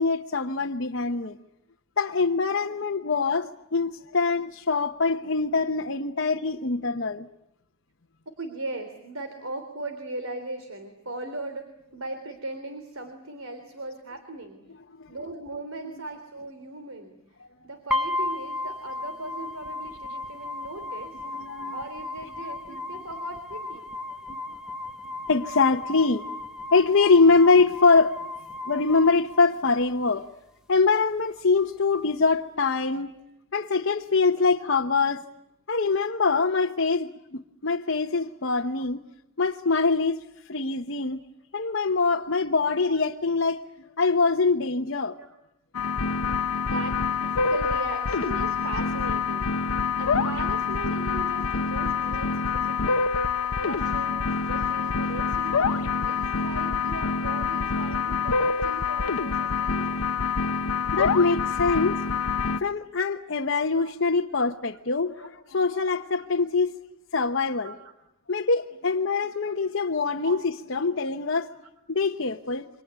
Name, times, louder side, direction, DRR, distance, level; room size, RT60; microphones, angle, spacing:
voice 1, 0.0-1.4 2.0-7.3 15.0-15.1 21.3-21.8 25.3-26.2 26.7-28.2 28.6-30.3 30.7-33.1 33.5-35.3 35.7-39.0 39.4-40.2 40.5-41.2 41.5-43.6 44.0-45.1 60.9-62.0 62.6-66.7 67.1-67.7 68.3-71.5 71.9-72.7, left 4 dB, 55° left, 1.0 m, -23 dB
voice 2, 8.4-14.6 15.1-17.2 17.6-21.2 21.7-23.9 33.0-33.3 38.8-38.9 39.1-39.2 41.2-41.3 42.2-42.3 42.8-43.0 45.2-45.4 46.7-46.9 47.2-49.5 49.9-53.1 53.5-60.0 63.8-64.0 65.2-65.3 66.2-66.3 67.6-67.9 69.3-69.5 70.0-70.4, right 2 dB, 70° right, 3.4 m, -38 dB
sound 1, 17.9-29.9, left 2 dB, 5° right, 1.1 m, -35 dB
sound 2, 45.7-62.6, left 5 dB, 85° left, 1.0 m, -26 dB
29.0 x 25.0 x 8.2 m
head